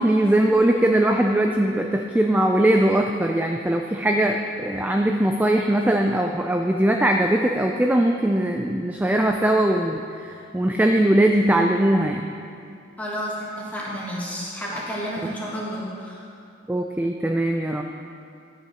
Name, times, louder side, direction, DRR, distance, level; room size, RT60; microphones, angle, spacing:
voice 1, 0.0-12.3 16.7-17.8, right 1 dB, 10° right, 3 dB, 0.3 m, -20 dB
voice 2, 13.0-16.2, equal, 10° left, -6 dB, 1.8 m, -31 dB
11.5 x 5.7 x 6.1 m, 2.4 s
head